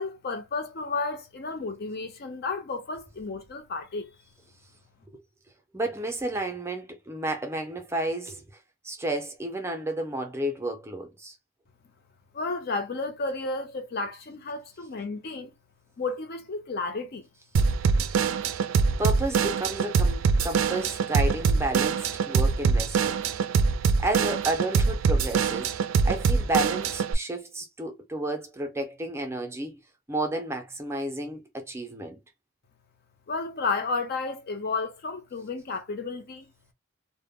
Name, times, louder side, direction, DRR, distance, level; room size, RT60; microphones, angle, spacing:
voice 1, 0.0-4.1 12.3-15.5 16.0-17.3 33.3-36.5, left 3 dB, 50° left, 0.5 m, -32 dB
voice 2, 5.7-8.4 8.8-11.3 19.0-23.2 24.0-25.7 26.0-29.8 30.1-32.2, right 1 dB, 15° right, 0.5 m, -31 dB
Drum kit / Drum, 17.5-27.1, right 5 dB, 75° right, 0.4 m, -24 dB
2.1 x 2.0 x 3.5 m
head